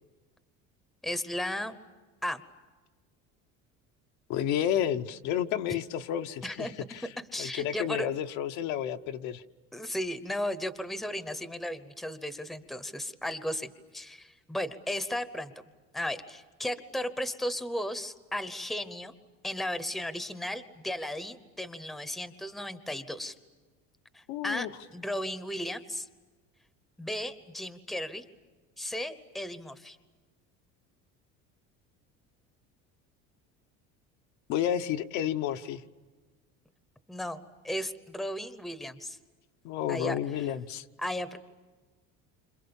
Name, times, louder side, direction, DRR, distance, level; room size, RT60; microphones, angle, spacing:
voice 1, 1.0-1.8 2.2-2.4 6.4-6.7 7.3-8.1 9.7-15.5 15.9-19.1 19.4-23.3 24.1-26.1 27.0-28.2 28.8-30.0 37.1-39.2 39.9-40.2 41.0-41.4, left 1 dB, ahead, 12 dB, 0.9 m, -35 dB
voice 2, 4.3-7.1 7.4-9.4 24.3-24.7 34.5-35.8 39.6-40.8, left 10 dB, 65° left, 7 dB, 1.0 m, -31 dB
29.0 x 26.5 x 7.1 m, 1.3 s
cardioid pair, 155°, 31 cm